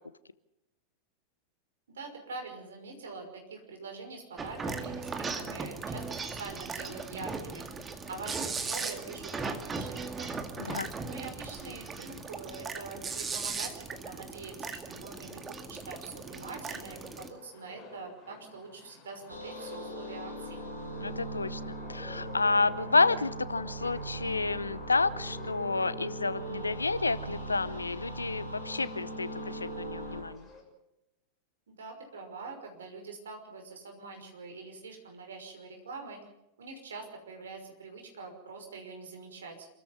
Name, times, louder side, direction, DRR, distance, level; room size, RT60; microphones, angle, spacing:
voice 1, 1.9-7.7 8.1-10.4 11.0-20.6 31.7-36.2 36.6-39.7, right 3 dB, 65° right, 3 dB, 5.8 m, -44 dB
sound 1, 4.4-17.3, right 4 dB, 15° right, 2.1 m, -38 dB
voice 2, 10.6-10.9 21.0-30.5, left 3 dB, 80° left, 17 dB, 0.9 m, -30 dB
sound 2, 15.3-30.6, left 3 dB, 20° left, 6.8 m, -52 dB
sound 3, 19.3-30.2, right 2 dB, 90° right, 5.3 m, -40 dB
27.5 x 14.0 x 7.4 m, 0.91 s
figure-of-eight pair, 90°, 0 cm